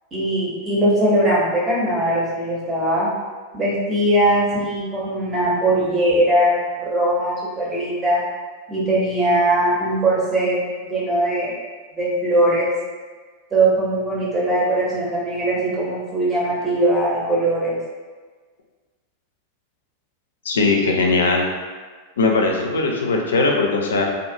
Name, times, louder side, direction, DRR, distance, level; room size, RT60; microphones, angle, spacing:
voice 1, 0.1-3.1 3.5-8.2 8.7-11.5 11.9-12.7 13.5-17.8, right 1 dB, 20° right, -6 dB, 0.9 m, -20 dB
voice 2, 20.5-21.4 22.2-24.0, left 3 dB, 65° left, 1 dB, 0.4 m, -19 dB
2.5 x 2.3 x 2.6 m, 1.4 s
figure-of-eight pair, 90°, 0 cm